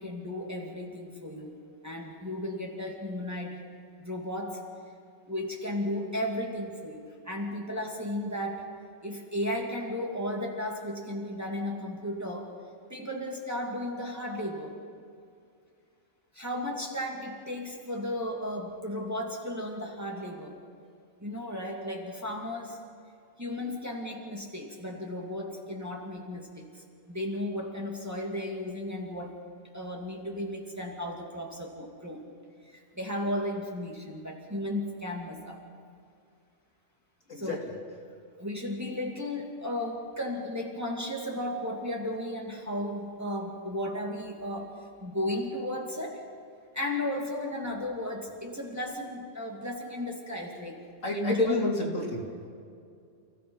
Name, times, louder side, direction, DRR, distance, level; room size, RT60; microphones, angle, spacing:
voice 1, 0.0-1.5 1.8-3.6 4.0-4.6 5.3-8.6 9.0-12.5 12.9-14.7 16.3-20.6 21.2-22.8 23.4-29.3 29.7-32.2 32.7-35.6 37.3-37.6 38.4-44.7 45.0-46.2 46.7-50.8 51.1-51.7, left 1 dB, 10° right, -2 dB, 2.6 m, -34 dB
voice 2, 37.3-37.6 51.0-52.5, left 1 dB, 70° left, -2 dB, 3.7 m, -29 dB
29.0 x 17.0 x 5.5 m, 2.4 s
omnidirectional pair, 1.4 m